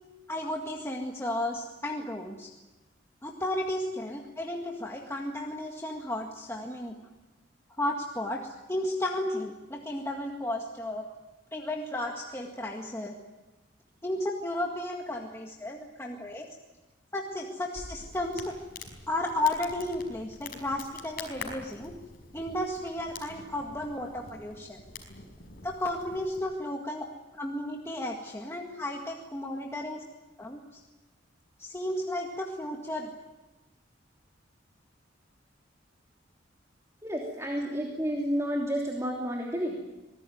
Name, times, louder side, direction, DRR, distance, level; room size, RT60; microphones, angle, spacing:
voice 1, 0.3-2.5 3.2-7.0 7.8-11.0 11.5-13.2 14.0-16.5 17.1-18.5 19.1-21.9 22.3-24.8 25.6-27.1 27.3-30.0 30.4-30.8 31.6-33.1, left 1 dB, 15° left, 0 dB, 1.9 m, -33 dB
Crackle, 17.7-26.4, left 4 dB, 50° left, 5.3 m, -46 dB
voice 2, 37.0-39.8, equal, 15° right, 0 dB, 3.0 m, -30 dB
26.0 x 19.0 x 9.4 m, 1.1 s
head